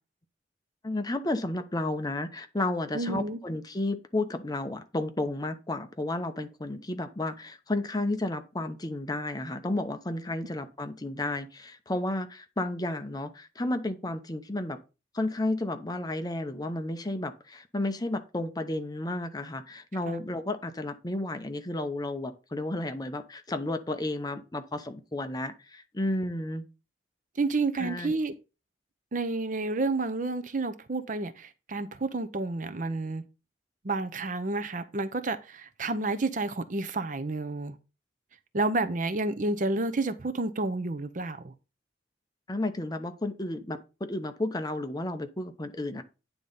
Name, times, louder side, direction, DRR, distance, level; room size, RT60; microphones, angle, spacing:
voice 1, 0.8-14.8 15.1-26.6 27.7-28.2 42.5-46.0, left 2 dB, 20° left, 0.8 m, -32 dB
voice 2, 2.9-3.4 20.1-20.2 27.4-28.3 29.1-33.2 33.8-37.8 38.5-41.5, right 2 dB, 45° right, 0.7 m, -30 dB
9.3 x 3.9 x 5.5 m
head